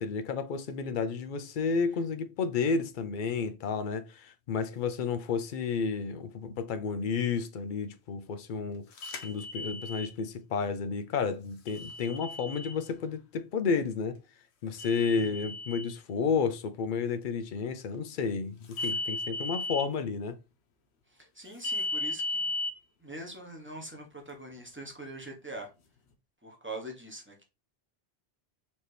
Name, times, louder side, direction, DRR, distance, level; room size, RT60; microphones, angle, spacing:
voice 1, 0.0-8.8 9.2-14.2 14.6-20.4, left 5 dB, 60° left, 0.6 m, -31 dB
sound 1, 9.0-10.1 11.7-12.8 14.8-15.9 18.7-19.9 21.6-22.7, left 2 dB, 85° left, 1.0 m, -35 dB
voice 2, 15.1-15.4 21.1-22.5 23.0-25.7 26.4-27.4, right 1 dB, 10° right, 0.9 m, -43 dB
4.3 x 2.9 x 3.2 m
omnidirectional pair, 1.1 m